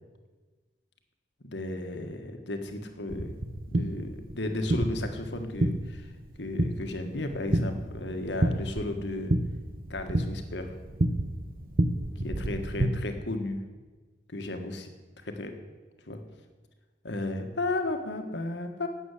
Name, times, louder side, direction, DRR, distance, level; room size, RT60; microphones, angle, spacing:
voice 1, 1.4-3.3 3.7-6.1 6.4-9.3 9.9-10.7 12.1-13.6 14.3-14.9 15.2-15.5 16.1-16.2 17.0-18.9, left 2 dB, 80° left, 6 dB, 1.6 m, -34 dB
sound 1, 3.1-12.9, right 1 dB, 50° right, 0.9 m, -30 dB
12.5 x 8.8 x 8.3 m, 1.3 s
head